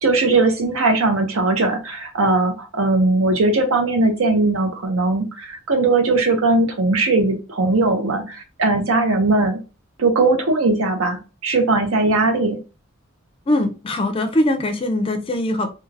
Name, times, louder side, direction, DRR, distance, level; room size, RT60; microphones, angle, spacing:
voice 1, 0.0-9.6 10.0-12.6, right 3 dB, 85° right, 5 dB, 0.7 m, -19 dB
voice 2, 13.5-15.7, left 1 dB, 25° left, 7 dB, 0.4 m, -21 dB
2.4 x 2.3 x 3.2 m, 0.31 s
head